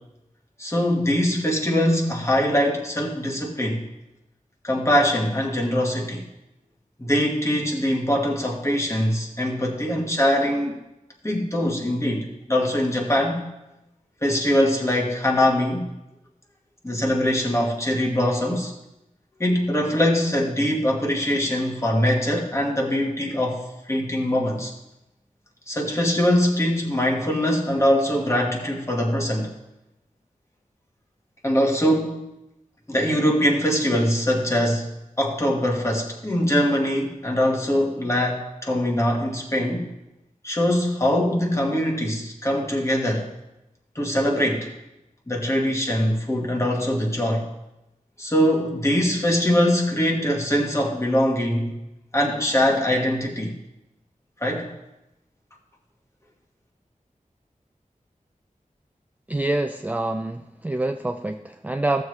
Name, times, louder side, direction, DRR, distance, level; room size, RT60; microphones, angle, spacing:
voice 1, 0.6-3.8 4.6-6.2 7.0-10.8 11.2-13.5 14.2-15.9 16.8-18.7 19.4-24.7 25.7-29.5 31.4-32.3 32.9-34.9 35.2-39.9 40.4-43.3 43.9-44.7 45.3-47.5 48.2-51.8 52.1-53.5 54.4-54.7, equal, 20° left, -1 dB, 1.6 m, -22 dB
voice 2, 59.3-62.0, right 2 dB, 10° right, 6 dB, 0.4 m, -26 dB
14.5 x 7.2 x 3.2 m, 0.92 s
wide cardioid pair, 90°, 14 cm